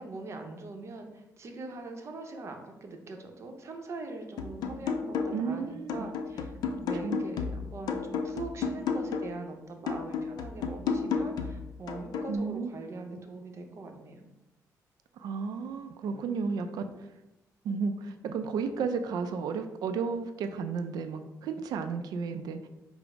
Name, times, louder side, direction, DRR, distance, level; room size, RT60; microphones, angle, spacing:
voice 1, 0.0-6.5 6.8-14.3, right 3 dB, 45° right, 4 dB, 0.7 m, -42 dB
sound 1, 4.4-5.5 5.9-9.4 9.9-12.4, left 5 dB, 90° left, 0.4 m, -33 dB
voice 2, 5.3-6.1 6.7-7.2 12.3-12.7 15.1-17.1 17.6-22.7, right 5 dB, 85° right, 8 dB, 0.3 m, -33 dB
5.0 x 2.0 x 4.7 m, 0.96 s
cardioid pair, 120°, 7 cm